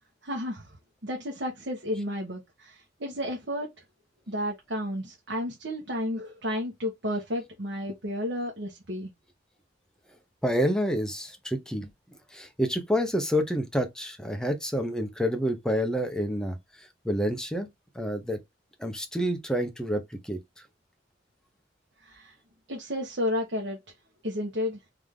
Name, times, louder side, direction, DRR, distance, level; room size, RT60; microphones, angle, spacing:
voice 1, 0.2-0.8 1.0-3.7 4.3-9.1 22.0-22.3 22.7-23.8 24.2-24.8, left 1 dB, 65° right, 1.2 m, -32 dB
voice 2, 10.4-11.9 12.3-16.6 17.0-17.7 17.9-18.4 18.8-20.4, equal, 5° left, 0.8 m, -28 dB
3.5 x 3.4 x 3.7 m
head